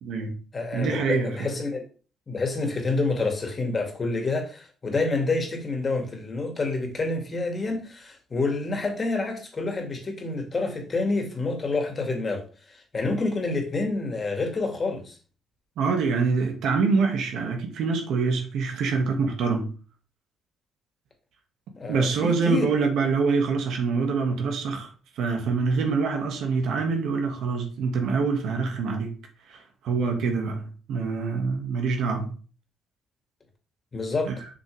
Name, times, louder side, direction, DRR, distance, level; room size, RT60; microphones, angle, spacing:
voice 1, 0.0-0.4 0.7-1.5 15.8-19.7 21.9-24.9 25.2-29.2 29.5-32.3 34.3-34.4, right 4 dB, 75° right, 2.0 m, -25 dB
voice 2, 0.5-1.8 2.3-12.4 12.7-15.1 21.8-22.7 33.9-34.3, left 3 dB, 30° left, 2.2 m, -28 dB
7.4 x 6.6 x 3.5 m
cardioid pair, 125°, 0 cm